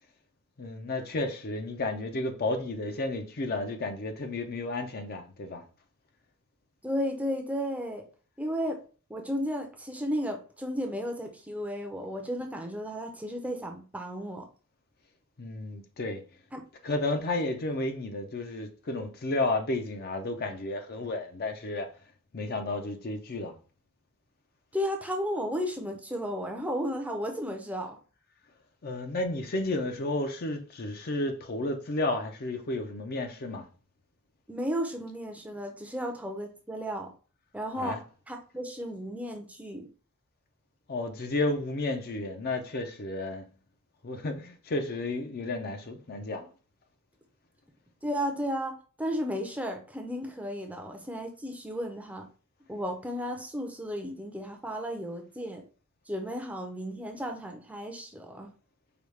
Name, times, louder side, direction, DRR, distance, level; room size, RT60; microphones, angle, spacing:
voice 1, 0.6-5.6 15.4-16.2 16.8-21.9 22.3-23.5 28.8-33.7 37.7-38.0 40.9-43.5 44.0-46.5, left 2 dB, 45° left, 0.5 m, -32 dB
voice 2, 6.8-8.1 8.4-8.8 9.1-14.5 16.5-16.6 24.7-28.0 34.5-37.1 37.5-38.0 38.3-39.9 48.0-52.3 52.7-55.6 56.1-58.5, equal, 5° right, 0.5 m, -34 dB
4.9 x 2.3 x 3.1 m
head